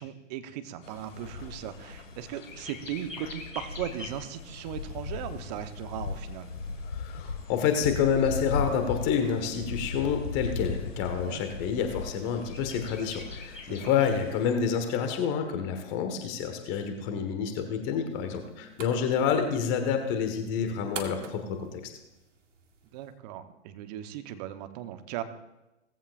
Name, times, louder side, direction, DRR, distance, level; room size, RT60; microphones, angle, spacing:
voice 1, 0.0-6.5 11.3-11.4 13.7-13.9 22.9-25.2, right 11 dB, 35° right, 10 dB, 1.0 m, -38 dB
Bird, 0.8-14.5, left 4 dB, 85° left, 1.9 m, -38 dB
voice 2, 6.9-21.8, left 7 dB, 30° left, 6 dB, 1.5 m, -28 dB
sound 1, 18.1-23.1, right 5 dB, 75° right, 1.9 m, -46 dB
18.0 x 15.0 x 2.5 m, 1.0 s
figure-of-eight pair, 120°, 37 cm